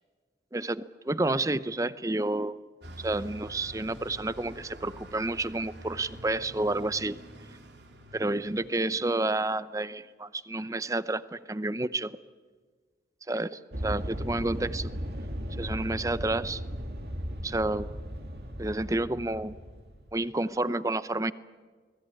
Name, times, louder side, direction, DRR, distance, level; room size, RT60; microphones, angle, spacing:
voice 1, 0.5-2.6 3.0-7.2 8.1-12.1 13.3-14.9 15.6-16.6 17.4-17.9 18.6-19.6 20.1-21.3, right 2 dB, 20° right, 15 dB, 0.7 m, -30 dB
Bus, 2.8-8.7, right 1 dB, 80° right, 3.1 m, -46 dB
sound 1, 13.7-20.2, equal, 60° right, 2.8 m, -36 dB
30.0 x 20.0 x 9.9 m, 1.5 s
head